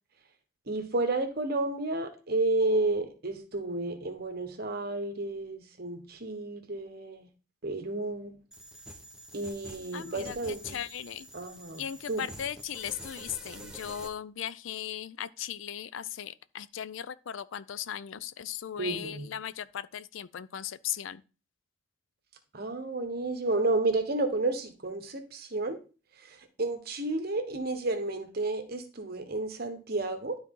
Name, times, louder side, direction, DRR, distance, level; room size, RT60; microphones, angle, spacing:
voice 1, 0.7-7.3 7.6-8.4 9.3-10.8 11.3-12.2 18.8-19.3 22.5-25.8 26.2-30.4, right 2 dB, 50° right, 1.2 m, -31 dB
sound 1, 8.5-14.1, right 1 dB, 5° right, 0.9 m, -47 dB
voice 2, 9.9-11.3 11.8-21.2, left 9 dB, 70° left, 0.4 m, -37 dB
12.0 x 4.0 x 3.8 m
head